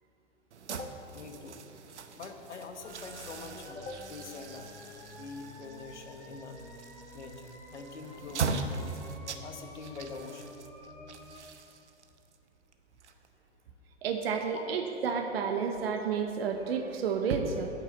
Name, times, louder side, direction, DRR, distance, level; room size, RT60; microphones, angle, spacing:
sound 1, 0.5-13.6, right 5 dB, 75° right, 0.8 m, -41 dB
voice 1, 0.7-1.6 2.1-4.7 5.1-6.6 7.1-9.0 9.4-10.6 14.5-14.7, left 4 dB, 75° left, 5 dB, 1.2 m, -44 dB
sound 2, 2.8-11.4, left 1 dB, 10° left, 1.4 m, -50 dB
voice 2, 14.0-17.7, right 6 dB, 55° right, 5 dB, 1.0 m, -31 dB
8.6 x 7.0 x 8.1 m, 2.9 s
figure-of-eight pair, 105°, 35 cm